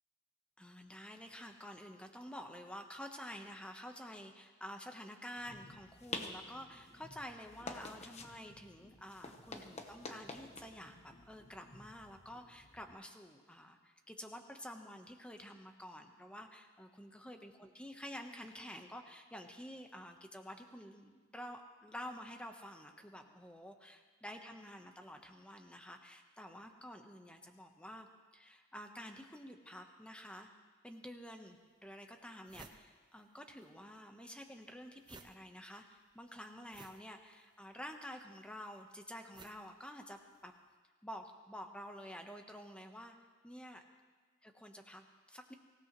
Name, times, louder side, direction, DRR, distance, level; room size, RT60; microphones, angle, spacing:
voice 1, 0.6-28.1 28.3-30.5 30.8-40.5 41.0-43.2 43.4-43.8 44.4-45.5, equal, 5° left, 4 dB, 1.1 m, -50 dB
sound 1, 5.4-12.9, left 3 dB, 35° left, 1.1 m, -49 dB
sound 2, 31.2-31.3 31.9-32.0 32.2-33.7 34.0-40.5, right 3 dB, 25° right, 0.8 m, -59 dB
24.5 x 16.5 x 3.2 m, 1.4 s
head